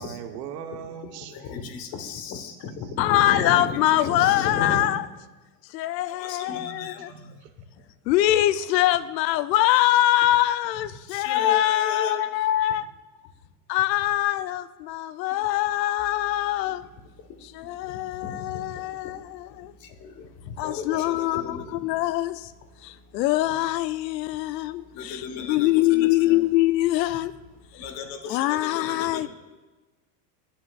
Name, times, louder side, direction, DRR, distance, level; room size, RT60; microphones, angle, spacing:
voice 1, 0.0-1.7 2.4-3.0 3.9-5.1 6.5-7.5, right 8 dB, 75° right, 1.2 m, -41 dB
voice 2, 1.5-4.8 6.2-7.0 11.1-12.2 18.2-18.4 20.6-21.6 25.0-26.4 27.8-29.3, left 5 dB, 45° left, 1.4 m, -33 dB
voice 3, 3.0-5.0 5.7-7.1 8.1-12.9 13.7-16.8 17.4-19.7 20.6-22.5 22.8-27.3 28.3-29.3, left 14 dB, 85° left, 0.6 m, -23 dB
sound 1, 16.0-27.8, equal, 25° left, 0.8 m, -56 dB
20.5 x 8.2 x 2.4 m
supercardioid pair, 130°, 49 cm